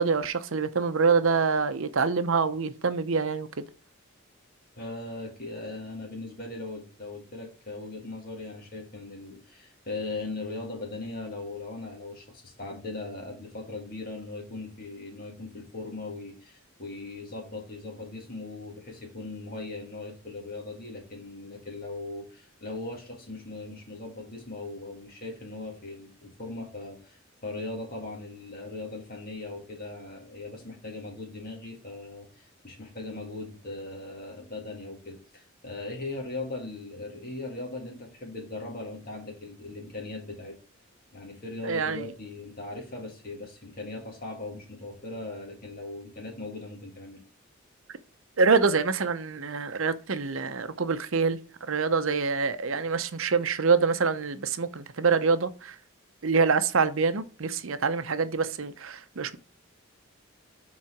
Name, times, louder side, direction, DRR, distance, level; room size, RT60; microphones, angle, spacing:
voice 1, 0.0-3.7 41.6-42.1 48.4-51.4 51.7-55.8 56.2-59.4, right 5 dB, 65° right, 0.7 m, -25 dB
voice 2, 4.8-40.6 41.1-47.2, left 2 dB, 45° left, 1.8 m, -39 dB
7.5 x 4.0 x 6.0 m
head